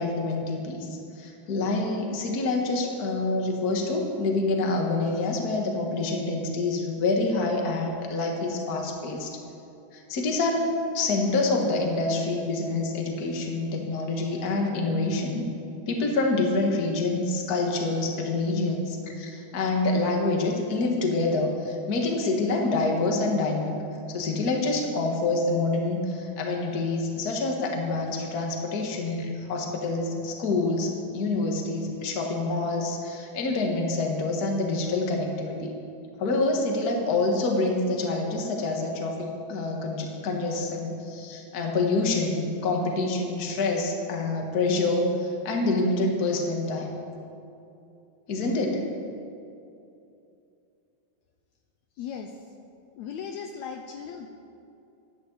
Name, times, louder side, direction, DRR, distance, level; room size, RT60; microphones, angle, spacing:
voice 1, 0.0-9.4 9.9-10.7 10.9-15.5 15.9-23.7 24.1-35.7 36.2-46.9 48.3-48.8, left 3 dB, 45° left, 1 dB, 1.3 m, -27 dB
voice 2, 52.0-52.3 53.0-54.3, left 7 dB, 85° left, 4 dB, 1.6 m, -37 dB
11.5 x 11.0 x 7.9 m, 2.7 s
omnidirectional pair, 4.0 m